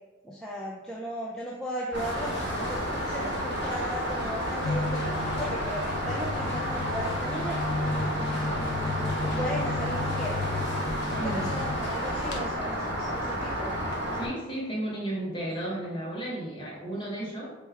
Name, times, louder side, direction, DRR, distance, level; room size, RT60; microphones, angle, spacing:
voice 1, 0.2-2.3 2.6-5.0 5.4-10.4 11.1-13.8, equal, 5° left, -5 dB, 0.3 m, -36 dB
sound 1, 1.9-12.4, left 1 dB, 60° left, 0.7 m, -40 dB
Rain, 1.9-14.3, equal, 60° right, 0.9 m, -31 dB
sound 2, 4.6-11.8, left 3 dB, 85° left, 0.3 m, -33 dB
voice 2, 11.2-11.5 14.1-17.5, right 1 dB, 25° left, -5 dB, 1.1 m, -33 dB
4.1 x 2.3 x 3.3 m, 1.1 s
head